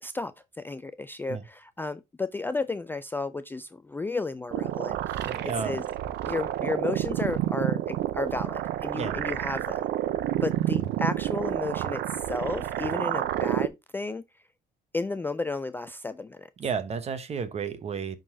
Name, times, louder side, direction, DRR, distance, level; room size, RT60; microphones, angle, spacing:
voice 1, 0.0-5.8 6.2-9.8 10.4-14.2 14.9-16.5, left 3 dB, 10° left, 0.3 m, -33 dB
sound 1, 4.5-13.7, right 13 dB, 80° right, 0.6 m, -29 dB
voice 2, 5.2-5.8 9.0-9.2 16.6-18.2, right 6 dB, 40° right, 1.0 m, -32 dB
11.0 x 3.9 x 2.7 m
cardioid pair, 110°, 17 cm